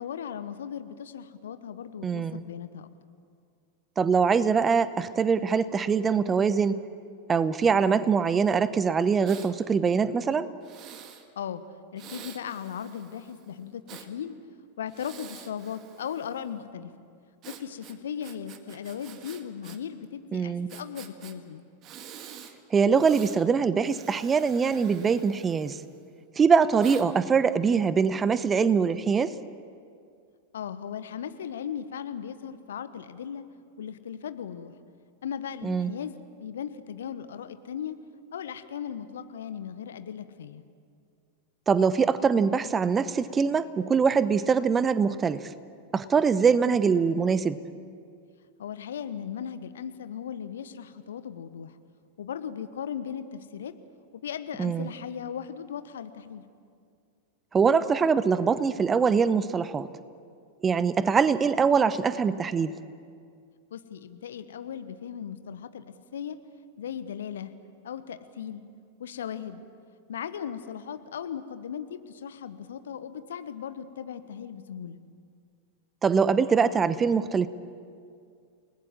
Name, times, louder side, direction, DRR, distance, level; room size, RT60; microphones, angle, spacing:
voice 1, 0.0-2.9 11.3-11.6 11.9-14.4 14.8-16.9 17.5-21.6 30.5-33.4 33.8-34.7 35.2-38.0 38.3-40.6 48.6-51.8 52.2-53.7 54.2-56.4 63.7-65.8 66.1-66.4 66.8-67.5 67.8-68.6 69.0-69.6 70.1-75.0, left 8 dB, 65° left, 11 dB, 1.2 m, -37 dB
voice 2, 2.0-2.4 4.0-6.7 7.3-10.5 20.3-20.7 22.7-25.8 26.4-29.4 35.6-35.9 41.7-45.5 45.9-47.6 54.6-54.9 57.5-59.9 60.6-62.7 76.0-77.5, right 6 dB, 20° right, 15 dB, 0.9 m, -23 dB
Breathing, 9.3-9.5 10.6-11.3 12.0-14.1 14.9-16.5 17.4-19.8 20.0-20.1 20.7-21.3 21.8-22.5 22.9-23.4 23.8-26.0 26.8-27.1, right 9 dB, 35° right, 1.8 m, -47 dB
29.5 x 19.5 x 7.5 m, 2.3 s
figure-of-eight pair, 90°, 0 cm